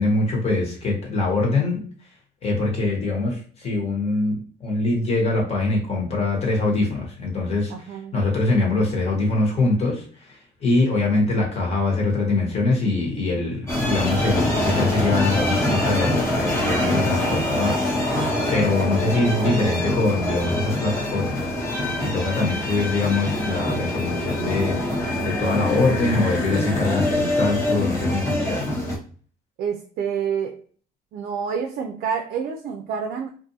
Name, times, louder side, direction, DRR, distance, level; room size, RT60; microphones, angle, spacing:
voice 1, 0.0-1.8 2.4-21.5 22.0-24.8 25.2-28.7, left 3 dB, 40° left, -1 dB, 1.2 m, -23 dB
voice 2, 7.7-8.1 29.6-30.6 31.1-33.3, right 7 dB, 60° right, 4 dB, 0.4 m, -28 dB
sound 1, 13.7-29.0, left 1 dB, 15° left, 0.9 m, -24 dB
sound 2, 14.6-14.7 15.1-15.2 15.6-26.3, left 6 dB, 60° left, 0.7 m, -38 dB
2.6 x 2.3 x 2.7 m, 0.43 s
cardioid pair, 110°, 17 cm